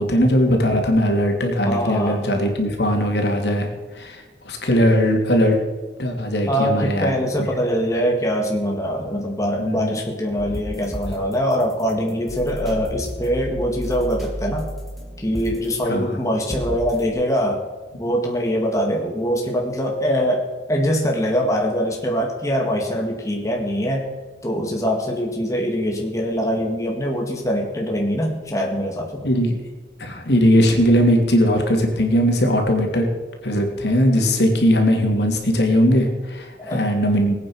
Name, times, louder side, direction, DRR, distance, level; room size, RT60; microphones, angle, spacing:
voice 1, 0.0-5.6 6.0-7.5 9.6-10.0 15.9-16.2 29.2-29.6 30.0-33.1 33.4-37.3, equal, 75° left, 2 dB, 2.9 m, -19 dB
voice 2, 1.7-2.2 6.5-14.7 15.2-17.6 18.0-24.1 24.4-29.3 36.6-36.9, equal, 20° left, 0 dB, 2.0 m, -23 dB
sound 1, 10.4-17.1, equal, ahead, 2.9 m, -33 dB
20.0 x 9.0 x 6.3 m, 1.3 s
head